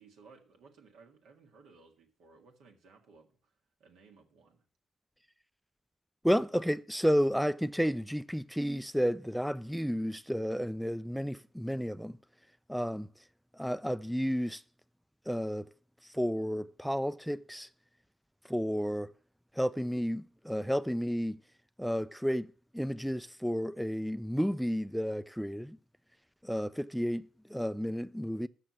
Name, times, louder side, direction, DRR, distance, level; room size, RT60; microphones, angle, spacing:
voice 1, 0.0-4.6, right 4 dB, 75° right, 1.5 m, -59 dB
voice 2, 6.2-12.2 12.7-13.1 13.5-14.6 15.3-15.7 16.1-17.7 18.5-19.1 19.5-21.4 21.8-25.8 26.4-28.5, equal, ahead, 0.3 m, -32 dB
6.6 x 6.0 x 7.3 m
supercardioid pair, 55°, 0 cm